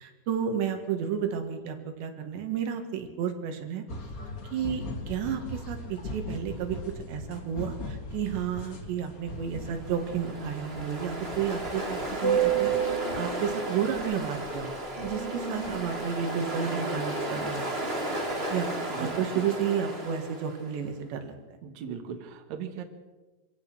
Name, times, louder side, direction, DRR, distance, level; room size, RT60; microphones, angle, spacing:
voice 1, 0.0-3.8 4.5-6.8 7.1-14.8 15.0-17.7 18.4-18.7 19.0-21.4, right 8 dB, 90° right, 5 dB, 4.1 m, -32 dB
sound 1, 3.9-16.3, left 2 dB, 35° left, 1.4 m, -41 dB
Ocean, 9.6-20.7, right 4 dB, 15° right, 2.3 m, -32 dB
voice 2, 18.9-19.4 21.6-22.8, right 7 dB, 55° right, 5 dB, 2.5 m, -38 dB
25.0 x 16.5 x 6.2 m, 1.2 s
omnidirectional pair, 4.9 m